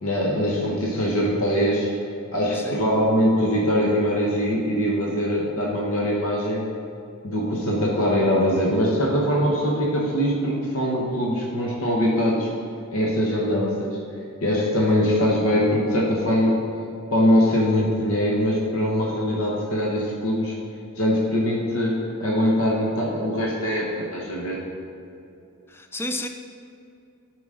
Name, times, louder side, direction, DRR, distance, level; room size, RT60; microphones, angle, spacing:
voice 1, 0.0-1.9 2.3-6.7 7.2-12.5 12.9-14.0 14.4-16.6 17.1-20.5 21.0-23.9 24.1-24.6, equal, 70° left, -3 dB, 1.1 m, -22 dB
voice 2, 25.7-26.3, left 1 dB, 10° left, 6 dB, 0.4 m, -32 dB
11.0 x 5.0 x 3.8 m, 2.7 s
head